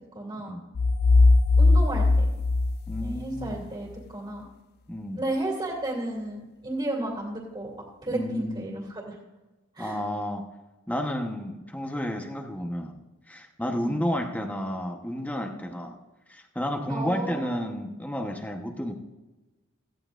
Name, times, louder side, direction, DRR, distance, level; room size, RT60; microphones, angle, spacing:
voice 1, 0.1-0.5 1.6-2.2 3.0-4.5 5.1-7.7 8.0-9.2 9.7-10.0 13.8-14.0 16.9-17.7, right 2 dB, 25° right, -3 dB, 2.4 m, -33 dB
sound 1, 0.8-3.6, left 3 dB, 50° left, 0.3 m, -20 dB
voice 2, 2.9-3.7 4.9-5.2 8.1-8.7 9.8-10.5 10.9-13.0 13.3-16.0 16.3-18.9, equal, 5° left, 3 dB, 1.0 m, -31 dB
17.0 x 14.0 x 2.5 m, 1.2 s
head